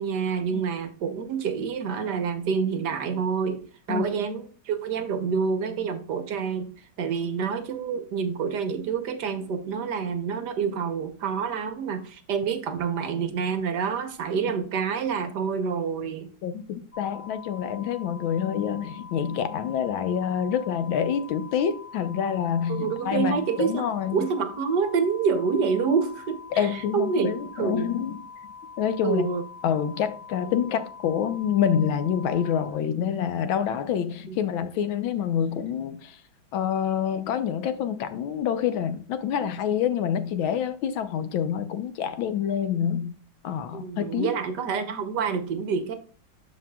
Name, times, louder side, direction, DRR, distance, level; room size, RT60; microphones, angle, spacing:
voice 1, 0.0-6.7 7.0-16.3 22.7-23.8 24.1-27.9 29.0-29.4 34.3-34.4 43.7-46.0, right 6 dB, 65° right, 1.4 m, -27 dB
voice 2, 16.4-24.3 26.6-28.2 28.8-29.3 29.6-36.2 36.5-43.1 43.4-44.4, left 8 dB, 90° left, 1.6 m, -27 dB
sound 1, 16.9-32.7, left 5 dB, 40° left, 3.0 m, -44 dB
13.0 x 4.8 x 2.3 m
omnidirectional pair, 2.1 m